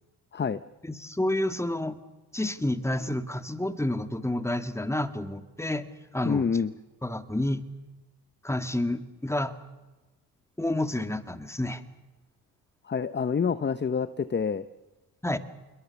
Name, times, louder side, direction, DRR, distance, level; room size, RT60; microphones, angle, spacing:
voice 1, 0.8-2.0 2.3-5.9 6.1-6.5 7.0-7.6 8.4-9.5 10.6-11.8 15.2-15.4, left 1 dB, 5° left, 9 dB, 2.1 m, -29 dB
voice 2, 6.2-6.7 12.8-14.6, left 6 dB, 30° left, 14 dB, 0.8 m, -27 dB
26.5 x 22.0 x 7.1 m, 1.1 s
cardioid pair, 75°, 37 cm